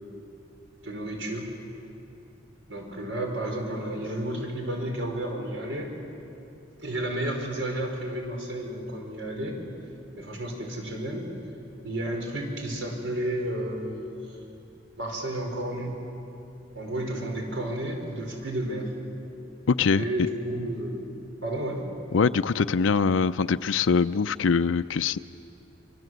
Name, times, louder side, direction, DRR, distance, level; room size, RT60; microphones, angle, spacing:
voice 1, 0.8-1.5 2.7-6.0 6.8-9.6 10.2-11.3 11.8-14.4 15.0-16.0 16.8-18.9 19.9-21.1 21.4-21.8, right 1 dB, 80° right, 2 dB, 5.2 m, -32 dB
voice 2, 19.7-20.0 22.1-25.2, left 5 dB, 85° left, 10 dB, 0.5 m, -23 dB
27.0 x 24.5 x 7.9 m, 2.8 s
head